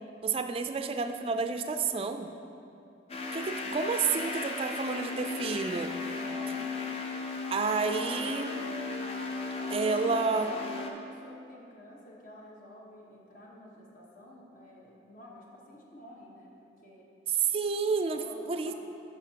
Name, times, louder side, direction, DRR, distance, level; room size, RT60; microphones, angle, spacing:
voice 1, 0.2-2.3 3.3-5.9 7.5-8.6 9.7-10.5 17.3-18.7, right 5 dB, 30° right, 7 dB, 0.3 m, -30 dB
sound 1, 3.1-10.9, left 3 dB, 35° left, 0.5 m, -36 dB
voice 2, 4.0-6.9 9.5-17.1 18.2-18.7, equal, 50° left, -3 dB, 1.1 m, -50 dB
10.0 x 6.1 x 2.8 m, 2.8 s
head